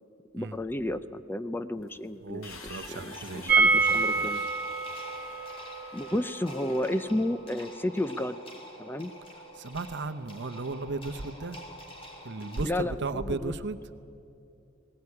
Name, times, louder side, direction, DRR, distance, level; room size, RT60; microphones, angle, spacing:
voice 1, 0.3-4.5 5.9-8.4 8.8-9.1 12.6-13.5, left 1 dB, 10° left, 12 dB, 0.5 m, -32 dB
sound 1, 1.8-7.5, left 4 dB, 80° left, 2.3 m, -50 dB
voice 2, 2.2-4.3 9.6-11.6 12.2-13.8, right 3 dB, 60° right, 11 dB, 0.9 m, -35 dB
sound 2, 2.8-12.6, left 1 dB, 25° left, 3.3 m, -47 dB
sound 3, 3.5-9.3 9.5-9.6 9.9-10.0, right 4 dB, 10° right, 3.4 m, -28 dB
19.0 x 18.5 x 9.7 m, 2.7 s
head